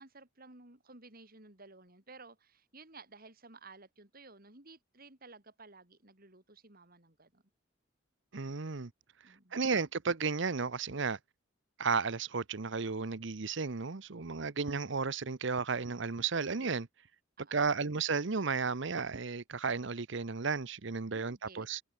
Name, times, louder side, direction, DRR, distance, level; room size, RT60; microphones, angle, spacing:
voice 1, 0.0-7.4 9.2-9.6 17.4-17.7 21.1-21.7, right 3 dB, 45° right, 3.9 m, -55 dB
voice 2, 8.3-8.9 9.5-11.2 11.8-16.9 17.5-21.8, right 4 dB, 65° right, 0.9 m, -33 dB
head